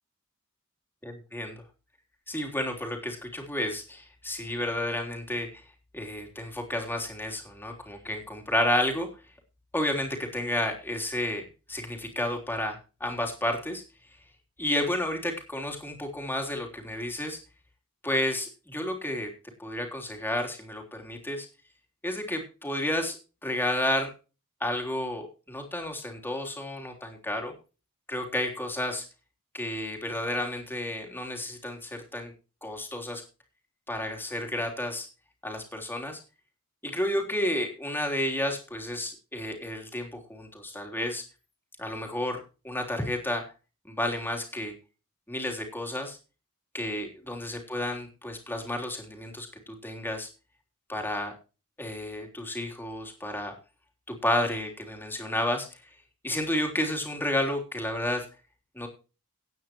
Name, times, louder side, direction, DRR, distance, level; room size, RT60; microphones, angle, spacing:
voice 1, 1.0-1.5 2.3-5.6 5.9-9.1 9.7-13.8 14.6-17.4 18.0-19.3 19.6-21.5 22.0-23.2 23.4-24.1 24.6-27.5 28.1-29.0 29.5-32.3 32.6-33.2 33.9-35.1 35.4-36.2 36.8-41.2 41.8-42.4 42.6-43.4 43.9-44.7 45.3-46.2 46.7-50.3 50.9-51.3 51.8-53.5 54.1-55.8 56.2-58.3 58.7-58.9, left 1 dB, 10° left, 2 dB, 3.4 m, -31 dB
17.5 x 9.3 x 3.0 m, 0.32 s
head